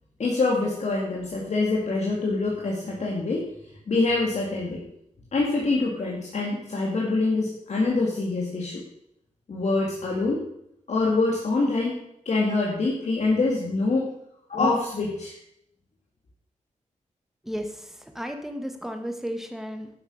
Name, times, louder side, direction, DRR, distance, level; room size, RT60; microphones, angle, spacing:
voice 1, 0.2-3.4 3.9-4.8 5.3-8.8 9.5-10.4 10.9-14.1 14.5-15.4, left 3 dB, 60° left, -3 dB, 2.3 m, -25 dB
voice 2, 17.4-19.9, equal, 5° right, 5 dB, 1.5 m, -34 dB
11.5 x 7.3 x 6.5 m, 0.76 s
wide cardioid pair, 130°, 13 cm